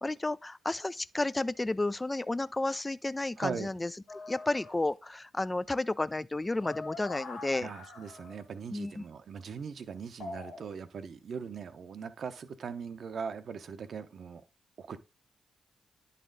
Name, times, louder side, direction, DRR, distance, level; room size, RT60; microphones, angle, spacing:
voice 1, 0.0-3.9 4.3-7.7 8.7-9.0, left 2 dB, 20° left, 0.3 m, -32 dB
voice 2, 3.4-3.7 7.6-14.4 14.8-15.0, right 6 dB, 60° right, 0.7 m, -40 dB
sound 1, 4.1-4.7 6.4-8.4 10.2-10.7, left 3 dB, 75° left, 1.5 m, -44 dB
10.0 x 4.2 x 3.9 m
hypercardioid pair, 40°, 0 cm